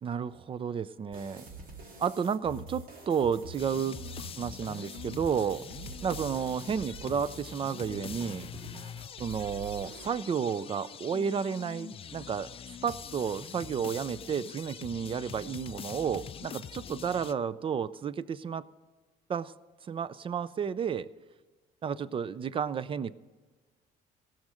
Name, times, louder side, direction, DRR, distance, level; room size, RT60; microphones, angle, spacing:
voice 1, 0.0-1.5 2.0-4.0 4.4-5.7 6.0-8.5 9.2-12.5 12.8-18.6 19.3-19.5 19.9-21.1 21.8-23.1, right 7 dB, 30° right, 18 dB, 0.4 m, -32 dB
sound 1, 1.1-10.1, right 3 dB, 55° right, 2.1 m, -46 dB
sound 2, 3.6-17.3, left 8 dB, 35° left, 0.4 m, -44 dB
16.5 x 6.4 x 6.3 m, 1.4 s
cardioid pair, 110°, 17 cm